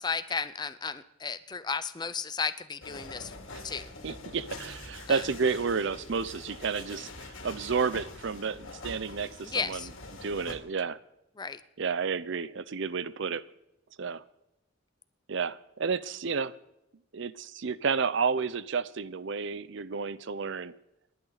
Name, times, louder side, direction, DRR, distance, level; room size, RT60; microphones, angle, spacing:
voice 1, 0.0-3.4 3.6-3.9 5.1-5.3 9.4-9.9 11.4-11.6, left 5 dB, 20° left, 14 dB, 0.5 m, -34 dB
sound 1, 2.8-10.5, left 3 dB, 70° left, 2.5 m, -45 dB
voice 2, 4.0-9.8 10.2-11.0 11.8-13.4 14.0-14.2 15.3-16.5 17.1-20.7, right 5 dB, 60° right, 17 dB, 0.6 m, -31 dB
28.0 x 11.0 x 4.0 m, 0.86 s
head